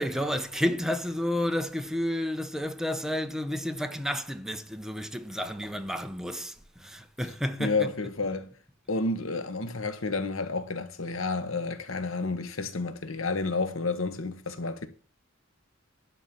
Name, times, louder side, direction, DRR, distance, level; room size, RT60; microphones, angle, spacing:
voice 1, 0.0-8.3, equal, ahead, 0.9 m, -31 dB
voice 2, 7.6-8.5 8.9-14.9, left 3 dB, 80° left, 1.4 m, -30 dB
11.5 x 4.4 x 7.2 m
head